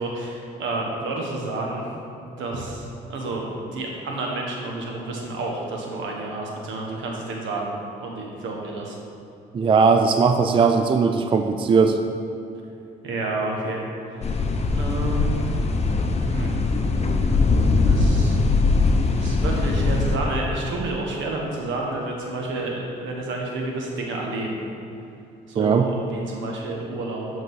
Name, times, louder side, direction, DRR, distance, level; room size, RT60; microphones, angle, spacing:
voice 1, 0.0-1.8 2.4-7.7 8.0-9.0 13.0-13.8 14.1-14.4 14.7-15.4 16.2-16.5 17.8-18.4 19.2-24.6 25.5-27.4, right 2 dB, 70° right, -1 dB, 1.2 m, -30 dB
voice 2, 9.5-12.0 25.6-25.9, right 5 dB, 25° right, 6 dB, 0.4 m, -18 dB
sound 1, 14.2-20.2, left 3 dB, 35° left, 0.7 m, -21 dB
7.6 x 3.9 x 4.7 m, 2.7 s
hypercardioid pair, 55°, 20 cm